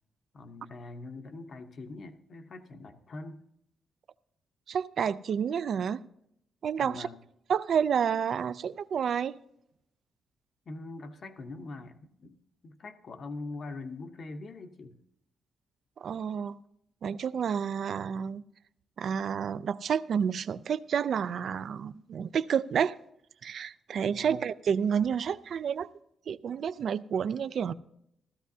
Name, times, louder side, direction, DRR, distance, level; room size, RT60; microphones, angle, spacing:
voice 1, 0.3-3.4 6.8-7.2 10.7-12.4 12.6-15.0 24.0-24.4, left 3 dB, 45° left, 8 dB, 0.8 m, -43 dB
voice 2, 4.7-6.0 6.6-7.1 7.5-9.4 16.0-16.6 17.0-18.4 19.0-23.0 23.4-25.9 26.3-27.7, right 7 dB, 60° right, 16 dB, 0.3 m, -30 dB
15.5 x 13.0 x 2.7 m, 0.77 s
cardioid pair, 135°, 0 cm